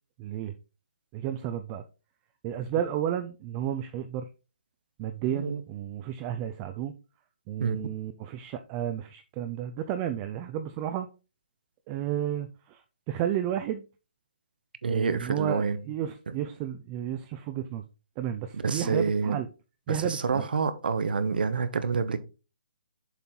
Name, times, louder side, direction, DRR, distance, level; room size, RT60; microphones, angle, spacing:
voice 1, 0.2-0.5 1.1-1.8 2.4-4.3 5.0-6.9 7.5-11.1 11.9-13.9 14.9-17.8 18.2-19.5 19.9-20.5, right 10 dB, 20° right, 0.4 m, -32 dB
voice 2, 14.8-15.8 18.6-19.4 19.9-22.2, right 5 dB, 75° right, 0.9 m, -27 dB
7.1 x 4.4 x 3.8 m
hypercardioid pair, 165°, 5 cm